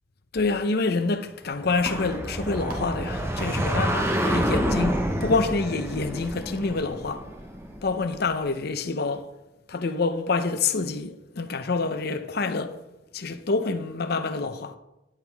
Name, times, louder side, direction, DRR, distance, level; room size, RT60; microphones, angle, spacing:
voice 1, 0.3-7.3 7.8-9.3 9.7-12.8 13.1-14.8, left 3 dB, 55° left, 0.7 m, -27 dB
sound 1, 1.2-8.0, right 1 dB, 50° right, 1.9 m, -46 dB
sound 2, 1.6-8.2, right 1 dB, 15° right, 0.9 m, -28 dB
10.5 x 8.1 x 3.5 m
head